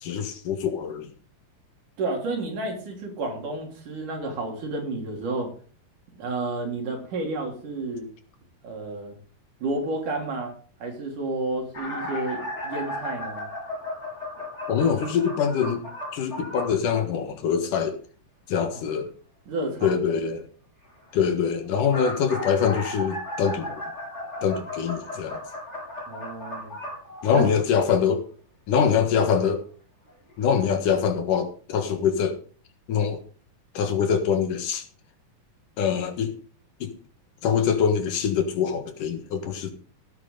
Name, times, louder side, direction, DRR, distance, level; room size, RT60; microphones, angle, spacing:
voice 1, 0.0-1.1 14.7-15.8 16.1-18.0 18.5-19.1 19.8-20.5 21.1-23.8 24.4-25.4 27.2-28.2 28.7-29.6 30.4-32.4 32.9-33.2 33.7-34.8 35.8-36.3 36.8-36.9 37.4-39.7, left 7 dB, 75° left, 3.1 m, -24 dB
voice 2, 2.0-5.5 6.2-8.1 8.6-9.1 9.6-10.5 10.8-13.5 18.7-18.8 19.5-19.9 26.1-26.7 27.3-27.5, right 2 dB, 70° right, 5.0 m, -31 dB
sound 1, 11.7-16.8 21.6-27.8 28.9-29.0 30.1-30.2 30.5-30.6, left 1 dB, 20° left, 4.3 m, -35 dB
17.0 x 9.2 x 4.0 m
omnidirectional pair, 3.8 m